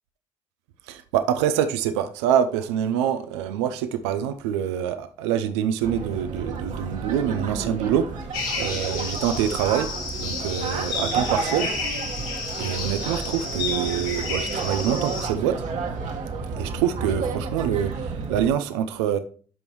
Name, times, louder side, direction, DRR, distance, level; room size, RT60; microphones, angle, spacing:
voice 1, 0.9-8.1 8.5-9.9 10.2-11.7 12.5-15.6 16.6-19.2, right 9 dB, 90° right, 0.6 m, -25 dB
sound 1, 5.8-18.5, right 4 dB, 60° right, 1.6 m, -31 dB
sound 2, 8.3-15.3, left 4 dB, 80° left, 3.2 m, -31 dB
12.5 x 5.4 x 3.1 m
hypercardioid pair, 55°, 14 cm